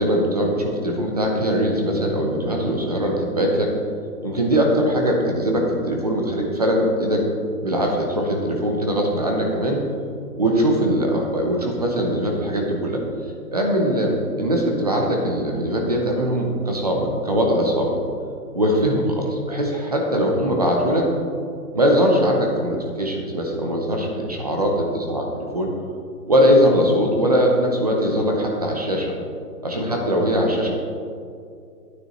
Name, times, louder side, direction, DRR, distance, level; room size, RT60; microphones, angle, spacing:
voice 1, 0.0-3.7 4.2-7.2 7.6-9.9 10.4-13.0 13.5-18.0 18.5-21.1 21.7-25.7 26.3-29.1 29.6-30.7, equal, 25° right, 0 dB, 0.7 m, -21 dB
9.5 x 9.4 x 3.0 m, 2.4 s
hypercardioid pair, 165°, 48 cm